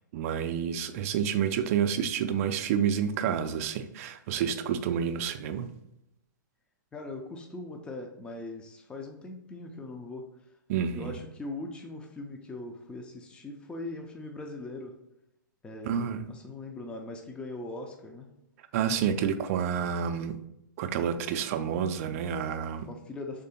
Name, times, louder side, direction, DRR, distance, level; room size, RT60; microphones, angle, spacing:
voice 1, 0.1-5.7 10.7-11.2 15.8-16.3 18.7-20.4 20.8-22.9, right 8 dB, 45° right, 0.4 m, -29 dB
voice 2, 6.9-10.3 10.9-15.0 15.6-18.3 22.9-23.4, left 2 dB, 10° left, 0.5 m, -40 dB
3.8 x 3.3 x 4.2 m
hypercardioid pair, 120°, 11 cm